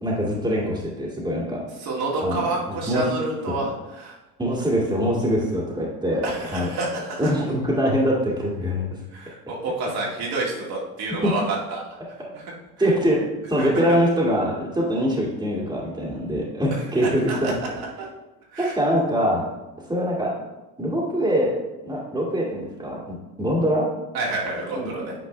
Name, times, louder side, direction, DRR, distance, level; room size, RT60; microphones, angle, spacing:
voice 1, 0.0-1.6 2.2-2.4 2.7-3.0 4.4-6.3 6.5-6.7 7.2-8.9 11.2-11.3 12.8-17.5 18.6-19.4 19.9-20.3 20.8-21.6 21.8-23.8 24.7-24.9, equal, 10° right, -4 dB, 2.0 m, -23 dB
voice 2, 1.8-4.2 6.2-7.3 9.1-11.8 12.3-12.4 12.8-12.9 13.6-13.7 16.7-18.1 18.5-18.8 24.1-25.1, right 2 dB, 50° right, -3 dB, 2.2 m, -29 dB
9.2 x 4.6 x 3.3 m, 1.0 s
hypercardioid pair, 80°, 46 cm